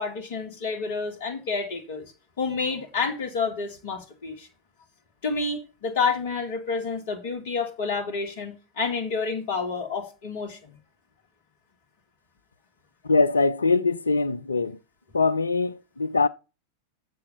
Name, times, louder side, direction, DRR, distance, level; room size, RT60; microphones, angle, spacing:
voice 1, 0.0-2.1 2.4-4.5 5.2-10.6, left 4 dB, 55° left, 2.2 m, -29 dB
voice 2, 13.0-14.8 15.1-16.3, left 3 dB, 75° left, 0.5 m, -22 dB
7.0 x 6.3 x 6.7 m
figure-of-eight pair, 90°, 0 cm